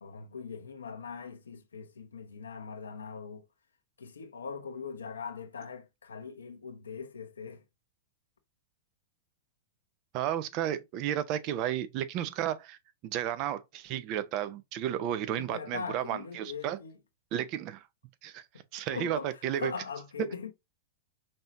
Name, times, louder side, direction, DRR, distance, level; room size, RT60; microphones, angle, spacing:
voice 1, 0.0-3.5 4.0-7.6 15.3-17.0 18.9-20.5, left 5 dB, 90° left, 0.7 m, -41 dB
voice 2, 10.1-12.8 13.0-16.8 17.3-17.8 18.2-18.4 18.7-19.7, right 11 dB, 45° right, 0.6 m, -33 dB
5.4 x 2.9 x 2.5 m
hypercardioid pair, 110°, 0 cm